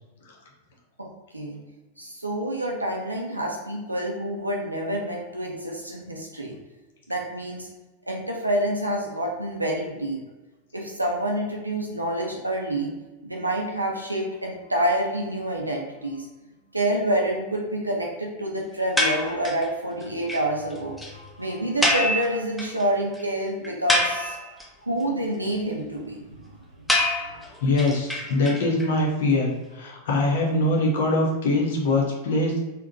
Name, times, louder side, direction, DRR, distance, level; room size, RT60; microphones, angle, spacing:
voice 1, 2.0-6.6 7.1-7.7 8.1-10.2 10.7-12.9 13.2-16.3 16.7-24.4 24.8-26.6 27.3-27.4, right 1 dB, 85° right, -1 dB, 0.4 m, -28 dB
sound 1, 19.0-19.7 20.0-20.1 20.3-20.4 20.7-20.8 21.0-21.1 21.8-22.8 23.1-23.2 23.6-24.6 26.9-28.9, left 1 dB, 5° left, 0.6 m, -25 dB
voice 2, 27.6-32.6, left 2 dB, 55° left, -1 dB, 0.7 m, -23 dB
3.6 x 2.1 x 2.6 m, 1.1 s
figure-of-eight pair, 90°, 0 cm